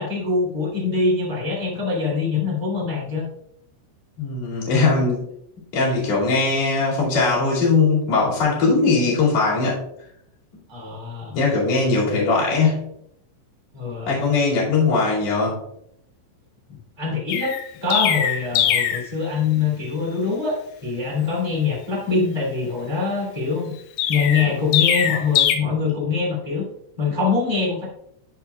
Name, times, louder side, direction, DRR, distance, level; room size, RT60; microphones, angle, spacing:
voice 1, 0.0-3.2 10.7-11.4 12.1-12.3 13.7-14.1 16.7-23.7 24.1-26.7 27.0-27.8, left 4 dB, 45° right, -6 dB, 0.3 m, -24 dB
voice 2, 4.2-5.3 5.7-9.8 11.3-12.9 14.1-15.6, left 4 dB, 40° left, -5 dB, 2.7 m, -20 dB
Chirp tweet, 17.3-19.1 24.0-25.6, left 10 dB, 80° left, 3.2 m, -21 dB
14.0 x 4.7 x 2.3 m, 0.76 s
omnidirectional pair, 5.9 m